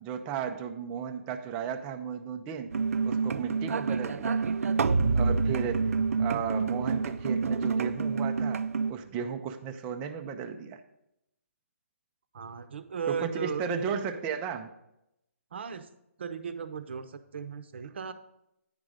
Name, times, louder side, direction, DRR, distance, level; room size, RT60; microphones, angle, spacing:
voice 1, 0.0-2.7 3.0-4.4 5.1-5.8 6.2-8.6 8.9-10.8 13.1-14.7, right 7 dB, 10° right, 6 dB, 0.3 m, -34 dB
sound 1, 2.7-8.9, right 4 dB, 85° right, 0.4 m, -28 dB
voice 2, 12.3-13.6 15.5-15.9 16.2-18.1, right 6 dB, 50° right, 11 dB, 0.6 m, -36 dB
9.6 x 5.1 x 4.8 m, 0.84 s
hypercardioid pair, 170°, 8 cm